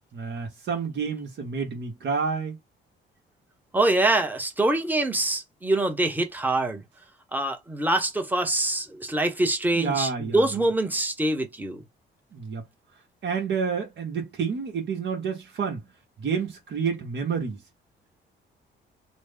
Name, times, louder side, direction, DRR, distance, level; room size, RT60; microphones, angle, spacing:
voice 1, 0.1-2.6 9.7-10.6 12.3-12.6 13.2-15.8 16.2-17.6, right 5 dB, 60° right, 1.0 m, -29 dB
voice 2, 3.7-6.8 7.3-11.8, right 2 dB, 10° right, 0.9 m, -24 dB
3.1 x 2.1 x 3.4 m
cardioid pair, 90°, 20 cm